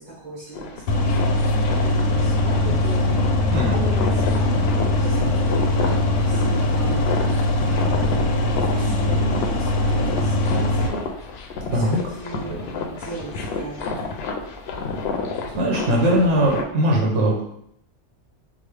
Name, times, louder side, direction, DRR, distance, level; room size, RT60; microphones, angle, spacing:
voice 1, 0.0-3.0 3.3-7.1 7.7-8.3 8.6-11.4 11.7-14.1, right 2 dB, 30° right, -7 dB, 1.4 m, -37 dB
sound 1, 0.5-16.6, left 3 dB, 65° left, 0.7 m, -31 dB
sound 2, 0.9-10.9, left 1 dB, 90° left, 1.0 m, -21 dB
voice 2, 15.6-17.4, right 1 dB, 70° right, -2 dB, 1.0 m, -20 dB
5.1 x 2.0 x 3.2 m, 0.75 s
omnidirectional pair, 1.3 m